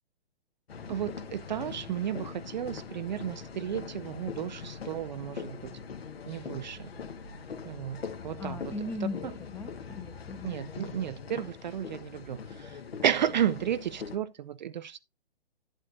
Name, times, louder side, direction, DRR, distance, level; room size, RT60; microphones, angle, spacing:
sound 1, 0.7-14.2, left 6 dB, 65° left, 1.7 m, -42 dB
voice 1, 0.9-5.8 6.3-6.9 7.6-8.7 9.2-9.3 10.4-15.0, right 10 dB, 45° right, 0.5 m, -33 dB
voice 2, 8.4-10.6, left 3 dB, 5° left, 0.8 m, -38 dB
11.0 x 8.2 x 2.6 m
figure-of-eight pair, 130°, 32 cm